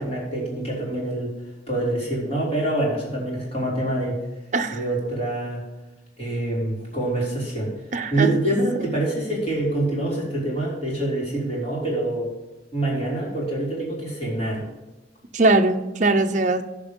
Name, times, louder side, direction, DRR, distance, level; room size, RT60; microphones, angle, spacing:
voice 1, 0.0-1.3 1.7-4.2 4.7-5.6 6.2-7.7 8.1-12.3 12.7-14.7, right 1 dB, 35° left, -5 dB, 4.1 m, -25 dB
voice 2, 7.9-8.3 15.3-16.6, right 2 dB, 40° right, 6 dB, 0.7 m, -20 dB
15.5 x 5.2 x 5.3 m, 1.1 s
head